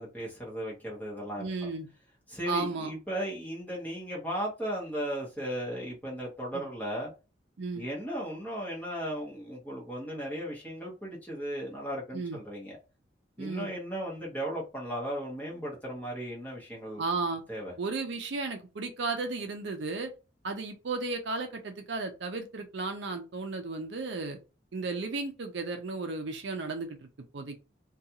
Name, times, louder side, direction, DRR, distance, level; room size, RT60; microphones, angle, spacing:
voice 1, 0.0-1.5 2.3-7.1 7.8-12.8 13.4-17.0 17.5-17.7, equal, 10° left, 1.0 m, -36 dB
voice 2, 1.4-1.9 2.5-2.9 6.5-6.6 7.6-7.8 12.1-12.4 13.4-13.7 17.0-17.4 17.8-20.1 20.4-24.4 24.7-27.0 27.3-27.6, right 3 dB, 65° right, 0.5 m, -34 dB
2.5 x 2.3 x 2.8 m
head